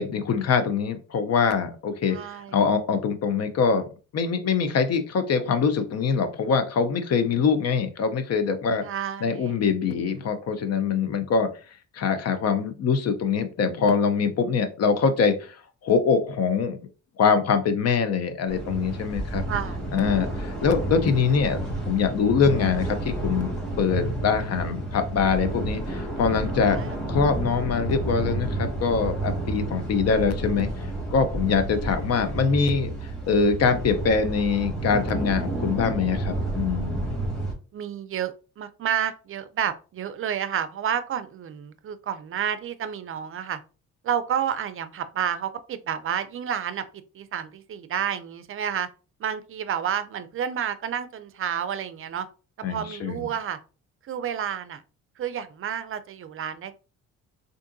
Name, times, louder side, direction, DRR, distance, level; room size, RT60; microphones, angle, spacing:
voice 1, 0.0-2.2 2.5-3.8 4.1-8.8 9.2-11.5 11.9-15.6 15.8-16.8 17.2-19.4 19.9-23.5 23.8-26.8 27.1-30.7 31.1-37.1 52.6-53.3, left 5 dB, 55° left, 0.6 m, -23 dB
voice 2, 2.1-2.6 8.8-9.5 19.5-19.9 26.7-27.0 37.7-43.6 44.0-46.8 47.1-48.9 49.2-52.3 52.6-53.6 54.1-54.8 55.2-56.7, right 9 dB, 45° right, 0.4 m, -30 dB
sound 1, 18.5-37.5, right 1 dB, ahead, 1.5 m, -30 dB
3.6 x 2.6 x 2.5 m
cardioid pair, 90°, 30 cm